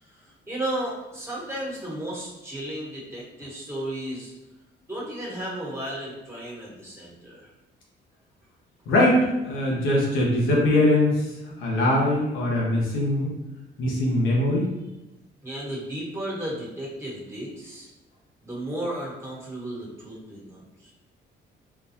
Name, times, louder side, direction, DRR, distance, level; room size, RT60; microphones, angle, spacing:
voice 1, 0.0-4.3 4.9-7.5 15.4-17.9 18.4-20.9, right 1 dB, 15° right, -6 dB, 1.3 m, -34 dB
voice 2, 8.9-11.2 11.6-13.3 13.8-14.7, left 1 dB, 85° left, -4 dB, 1.0 m, -22 dB
3.9 x 2.3 x 2.7 m, 1.0 s
cardioid pair, 90°, 20 cm